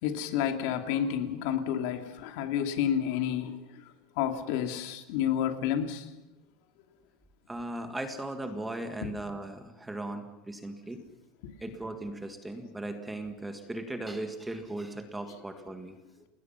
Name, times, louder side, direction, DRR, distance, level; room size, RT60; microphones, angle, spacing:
voice 1, 0.0-3.8 4.2-6.1 9.0-9.1 11.4-11.5, left 9 dB, 60° left, 6 dB, 2.6 m, -30 dB
voice 2, 7.5-11.0 11.6-16.0, right 1 dB, 5° right, 6 dB, 1.7 m, -37 dB
30.0 x 20.5 x 5.8 m, 0.96 s
cardioid pair, 175°, 0 cm